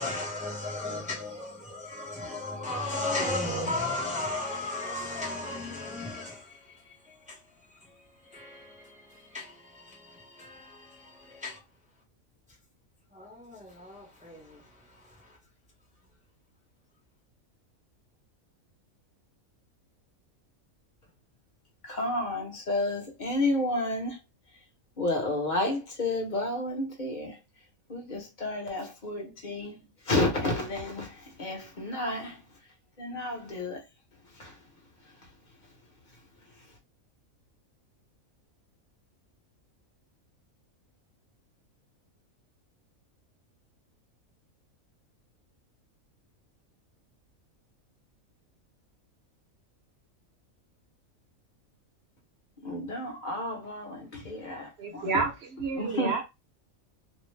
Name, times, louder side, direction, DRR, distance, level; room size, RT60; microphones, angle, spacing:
voice 1, 0.0-11.6 13.1-15.4, left 2 dB, 5° right, 0.7 m, -36 dB
voice 2, 21.8-24.2 25.0-27.4 27.9-32.4 33.0-33.8 34.3-34.6 52.6-55.1 55.7-56.2, left 2 dB, 40° left, 0.8 m, -31 dB
voice 3, 54.8-56.2, right 4 dB, 55° right, 0.9 m, -30 dB
2.7 x 2.0 x 3.2 m
omnidirectional pair, 1.5 m